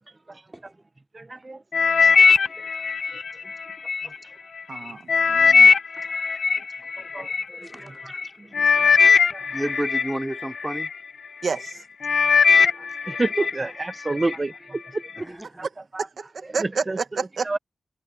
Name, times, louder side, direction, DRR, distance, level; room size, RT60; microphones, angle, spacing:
voice 1, 1.1-1.6 7.1-7.3 8.8-8.9 13.1-15.0 16.9-17.0 17.5-17.6, right 2 dB, 30° right, 0.7 m, -27 dB
sound 1, 1.7-4.1 4.6-7.4 8.1-8.3 8.5-10.9 11.4-11.7 12.0-13.5 13.9-14.4 15.0-15.1, left 5 dB, 75° left, 0.8 m, -19 dB
voice 2, 4.7-5.7 11.4-11.8 16.0-17.6, right 5 dB, 75° right, 1.6 m, -30 dB
voice 3, 7.6-8.3 9.5-10.9 13.4-13.5 15.2-15.7, right 1 dB, 10° right, 4.7 m, -32 dB
wide cardioid pair, 110°, 0 cm